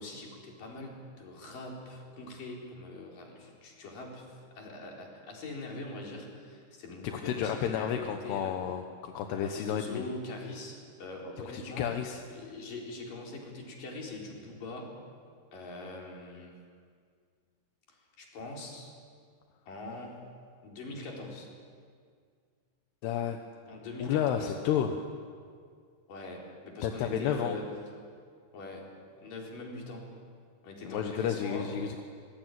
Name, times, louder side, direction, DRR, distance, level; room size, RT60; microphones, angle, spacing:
voice 1, 0.0-8.5 9.4-11.9 12.3-15.0 15.5-16.5 17.9-18.9 19.7-20.3 20.6-21.5 23.7-24.5 26.1-27.7 28.5-28.9 29.2-30.1 30.6-31.7, left 2 dB, 55° left, -1 dB, 5.7 m, -42 dB
voice 2, 7.0-10.0 11.5-12.2 23.0-23.4 24.0-25.1 26.8-27.6 30.8-32.0, left 9 dB, 85° left, 5 dB, 3.3 m, -31 dB
25.5 x 21.0 x 9.3 m, 2.1 s
omnidirectional pair, 4.7 m